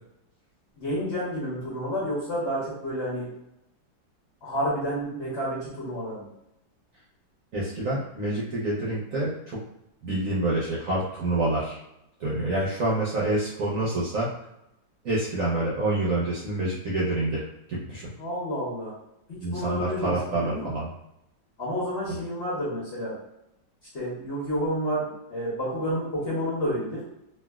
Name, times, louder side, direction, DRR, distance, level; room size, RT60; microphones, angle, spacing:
voice 1, 0.8-3.3 4.4-6.3 18.2-18.9 19.3-20.7 21.6-23.2 23.9-27.0, equal, 45° left, -8 dB, 1.2 m, -30 dB
voice 2, 7.5-9.6 10.0-11.8 12.2-14.3 15.0-17.4 17.7-18.1 19.4-20.9 22.1-22.2, right 2 dB, 60° right, -7 dB, 0.9 m, -27 dB
3.3 x 2.5 x 2.3 m, 0.85 s
omnidirectional pair, 2.0 m